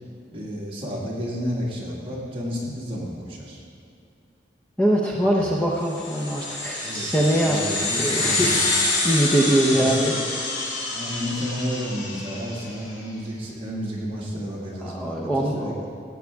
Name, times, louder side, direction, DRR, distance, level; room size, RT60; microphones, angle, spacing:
voice 1, 0.3-3.6 5.3-5.5 6.8-7.1 7.4-8.7 9.7-10.0 10.9-15.9, equal, 30° right, -5 dB, 2.0 m, -31 dB
voice 2, 4.8-8.8 9.0-10.5 14.8-15.9, right 1 dB, 10° left, -3 dB, 0.7 m, -23 dB
sound 1, 5.9-12.7, left 2 dB, 85° left, 2.1 m, -27 dB
15.5 x 7.9 x 3.5 m, 2.6 s
head